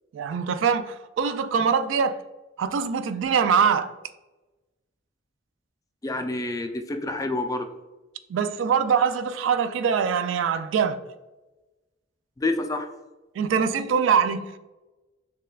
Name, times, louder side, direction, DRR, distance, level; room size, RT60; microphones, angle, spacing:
voice 1, 0.1-2.2 2.6-3.9 8.3-11.0 13.4-14.6, right 6 dB, 75° right, 0.3 m, -23 dB
voice 2, 6.0-7.7 12.4-12.9, left 2 dB, 20° left, 0.3 m, -28 dB
6.4 x 2.3 x 2.3 m
head